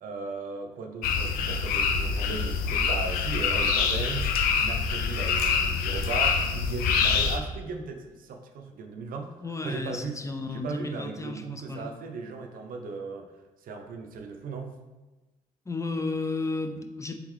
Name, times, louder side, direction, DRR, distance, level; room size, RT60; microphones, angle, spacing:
voice 1, 0.0-9.3 9.6-10.2 10.5-13.3 13.6-14.8, right 4 dB, 70° right, 4 dB, 0.5 m, -37 dB
sound 1, 1.0-7.4, left 5 dB, 90° left, 0.4 m, -25 dB
voice 2, 9.4-11.9 15.7-17.2, left 3 dB, 20° left, 6 dB, 0.5 m, -33 dB
3.7 x 3.5 x 3.1 m, 1.1 s
supercardioid pair, 60°, 15 cm